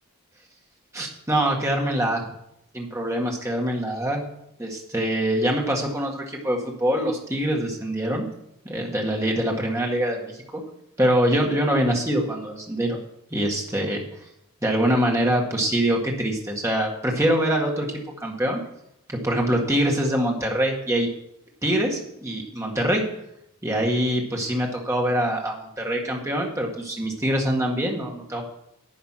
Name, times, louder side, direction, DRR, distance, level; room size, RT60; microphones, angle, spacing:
voice 1, 0.9-2.3 2.7-4.3 4.6-8.3 8.6-10.6 11.0-13.0 13.3-14.0 14.6-18.6 19.1-21.1 21.6-23.1 23.6-28.5, right 1 dB, 15° right, 0 dB, 1.8 m, -24 dB
11.0 x 8.4 x 5.8 m, 0.81 s
head